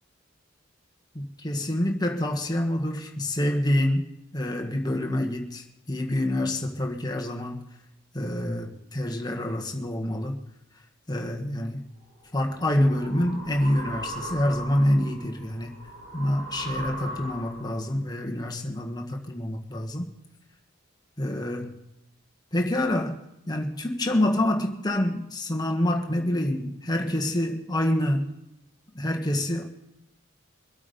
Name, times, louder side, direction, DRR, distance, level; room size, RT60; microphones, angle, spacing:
voice 1, 1.1-4.1 4.3-7.6 8.1-10.4 11.1-11.8 12.3-15.8 16.1-20.1 21.2-21.8 22.5-23.2 23.5-28.3 28.9-29.7, left 1 dB, 20° left, 1.5 m, -27 dB
sound 1, 12.1-17.9, equal, 75° right, 3.6 m, -39 dB
24.0 x 8.5 x 5.3 m
head